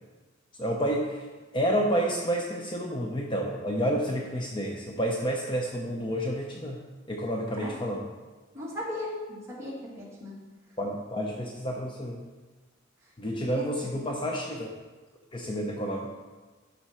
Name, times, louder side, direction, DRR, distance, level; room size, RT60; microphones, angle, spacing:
voice 1, 0.6-1.3 1.5-6.8 7.1-8.1 10.8-12.2 13.2-14.7 15.3-16.1, equal, 25° left, 0 dB, 0.7 m, -29 dB
voice 2, 8.5-10.3 13.3-14.0, left 1 dB, 15° right, -6 dB, 2.2 m, -37 dB
10.5 x 5.9 x 4.4 m, 1.3 s
head